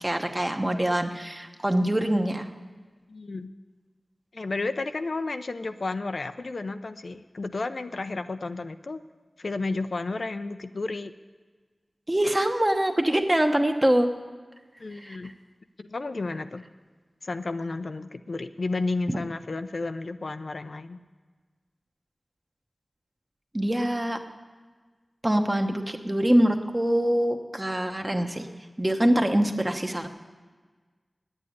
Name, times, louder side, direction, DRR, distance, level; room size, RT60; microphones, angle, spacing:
voice 1, 0.0-2.5 12.1-14.1 15.0-15.2 23.5-24.2 25.2-28.5 28.8-30.1, right 1 dB, 20° right, 5 dB, 1.0 m, -24 dB
voice 2, 3.1-3.5 4.3-9.0 9.4-11.1 14.8-15.3 15.8-16.6 17.2-21.0, left 3 dB, 70° left, 9 dB, 0.5 m, -32 dB
9.8 x 8.8 x 9.5 m, 1.4 s
wide cardioid pair, 70°, 0 cm